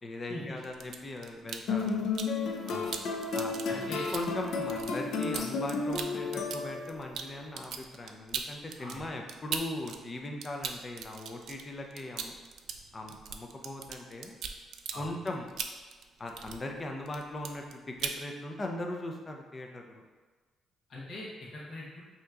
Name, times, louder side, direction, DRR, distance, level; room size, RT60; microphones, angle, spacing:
voice 1, 0.0-2.1 3.3-12.3 12.9-14.3 15.0-15.5 16.2-20.0, left 1 dB, 30° left, 2 dB, 0.6 m, -39 dB
sound 1, 0.6-2.3 2.7-10.0 10.2-16.8 17.1-17.7 18.0-18.2, right 6 dB, 70° right, 0.3 m, -39 dB
sound 2, 1.7-7.1, left 4 dB, 75° left, 0.5 m, -33 dB
voice 2, 2.6-3.0 3.7-4.1 8.8-9.1 14.9-15.1 20.9-22.0, left 1 dB, 60° left, -6 dB, 1.1 m, -41 dB
5.5 x 2.9 x 2.4 m, 1.4 s
cardioid pair, 90°, 0 cm